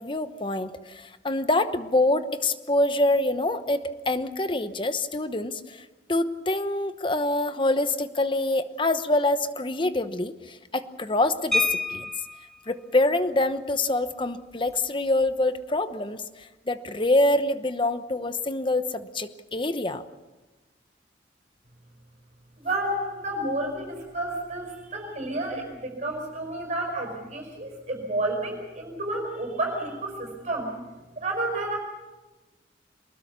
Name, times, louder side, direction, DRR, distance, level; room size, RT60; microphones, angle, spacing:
voice 1, 0.0-12.1 12.7-20.0, left 2 dB, 25° left, 11 dB, 1.0 m, -26 dB
sound 1, 11.5-12.6 14.0-14.2 14.5-14.7 15.1-15.4, left 3 dB, ahead, 1.5 m, -28 dB
voice 2, 22.6-30.7 31.1-31.8, right 2 dB, 40° right, 1 dB, 5.0 m, -30 dB
23.5 x 20.5 x 6.9 m, 1.2 s
head